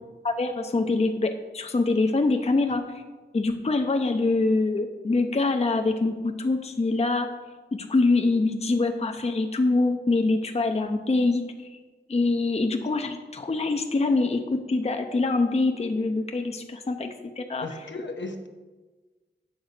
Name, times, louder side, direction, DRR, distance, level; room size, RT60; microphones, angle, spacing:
voice 1, 0.2-3.0 3.3-7.3 7.7-11.8 12.1-17.7, left 3 dB, 35° left, 6 dB, 0.6 m, -24 dB
voice 2, 17.6-18.5, left 2 dB, 70° left, 5 dB, 0.9 m, -35 dB
7.9 x 3.9 x 6.6 m, 1.3 s
cardioid pair, 45°, 19 cm